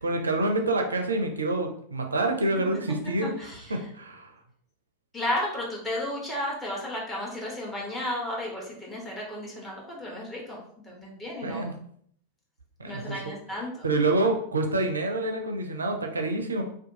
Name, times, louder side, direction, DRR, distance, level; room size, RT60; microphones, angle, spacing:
voice 1, 0.0-4.3 11.4-11.7 12.8-13.2 13.8-16.6, right 2 dB, 75° right, 3 dB, 0.4 m, -27 dB
voice 2, 3.2-3.8 5.1-11.7 12.9-13.9, left 1 dB, 15° left, -3 dB, 1.0 m, -33 dB
2.7 x 2.2 x 2.7 m, 0.63 s
figure-of-eight pair, 90°, 0 cm